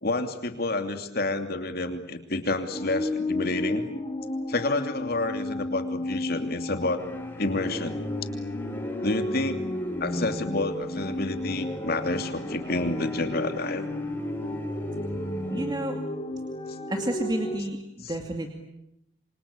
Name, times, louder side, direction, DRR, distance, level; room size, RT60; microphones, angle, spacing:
voice 1, 0.0-3.9 4.5-7.0 7.4-8.0 9.0-9.6 10.0-13.8 18.0-18.1, left 2 dB, 50° left, 7 dB, 2.8 m, -29 dB
sound 1, 2.7-17.6, left 1 dB, 25° left, 3.3 m, -33 dB
sound 2, 7.0-15.7, equal, 10° left, 4.8 m, -38 dB
voice 2, 15.5-16.0 16.9-18.5, right 1 dB, 20° right, 3 dB, 2.4 m, -30 dB
28.0 x 24.5 x 8.5 m, 0.82 s
head